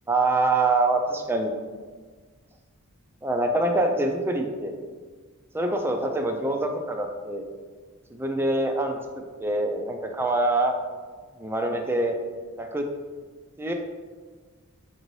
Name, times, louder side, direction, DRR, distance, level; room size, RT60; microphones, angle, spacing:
voice 1, 0.1-1.5 3.2-4.8 5.5-7.5 8.1-9.0 9.4-10.7 11.4-12.2 12.6-12.9 13.6-13.7, right 2 dB, 10° right, 3 dB, 0.3 m, -25 dB
6.0 x 2.6 x 3.1 m, 1.5 s
head